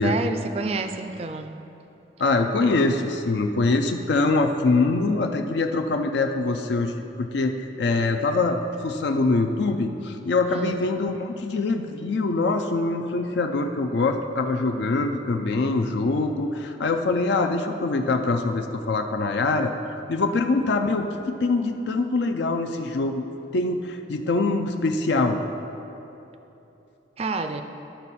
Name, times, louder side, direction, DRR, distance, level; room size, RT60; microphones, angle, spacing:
voice 1, 0.0-1.5 10.5-10.8 27.2-27.6, right 3 dB, 35° right, 8 dB, 0.4 m, -29 dB
voice 2, 2.2-19.7 20.1-23.3 23.5-25.4, left 3 dB, 70° left, 4 dB, 0.4 m, -24 dB
12.5 x 4.4 x 4.2 m, 2.9 s
head